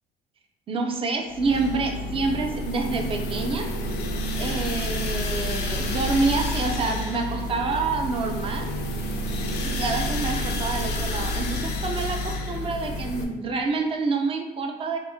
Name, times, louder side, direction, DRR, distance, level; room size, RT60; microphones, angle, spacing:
voice 1, 0.7-3.7 4.4-8.7 9.6-15.0, right 3 dB, 35° right, 3 dB, 0.5 m, -27 dB
sound 1, 1.3-13.2, left 1 dB, 75° left, 0.5 m, -29 dB
2.9 x 2.5 x 3.5 m, 1.1 s
cardioid pair, 110°, 17 cm